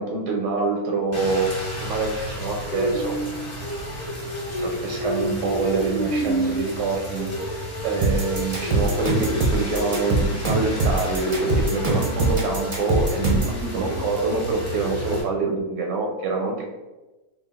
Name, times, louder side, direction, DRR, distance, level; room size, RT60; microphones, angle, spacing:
voice 1, 0.0-1.5 1.8-3.2 4.5-7.3 7.8-16.7, right 4 dB, 70° right, 0 dB, 0.7 m, -26 dB
Rain, 1.1-15.2, equal, 20° left, 0.4 m, -30 dB
sound 1, 8.0-13.6, right 2 dB, 45° right, 0.4 m, -22 dB
3.7 x 2.1 x 3.6 m, 1.1 s
omnidirectional pair, 1.6 m